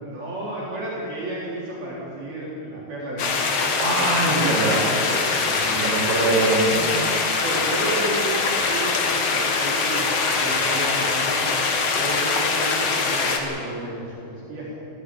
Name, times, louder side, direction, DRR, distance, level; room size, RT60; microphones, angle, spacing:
voice 1, 0.0-3.6 3.9-4.9 7.4-10.1 10.4-11.6 12.0-14.7, right 1 dB, 55° right, -6 dB, 5.6 m, -32 dB
sound 1, 3.2-13.4, left 4 dB, 55° left, 1.9 m, -23 dB
voice 2, 3.5-4.8 5.2-7.0, right 2 dB, 75° right, -3 dB, 7.3 m, -24 dB
17.0 x 16.5 x 9.8 m, 2.6 s
omnidirectional pair, 5.3 m